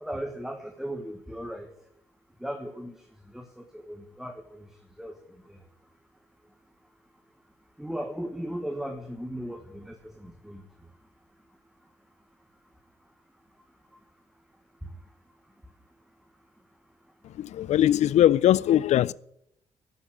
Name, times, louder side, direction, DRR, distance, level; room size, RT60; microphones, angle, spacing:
voice 1, 0.0-1.7 2.4-2.9 3.3-4.7 5.0-5.2 5.5-5.6 7.8-10.6, equal, 5° right, 1.2 m, -37 dB
voice 2, 17.4-19.1, left 12 dB, 75° left, 0.4 m, -21 dB
11.5 x 7.9 x 8.4 m
cardioid pair, 95°, 12 cm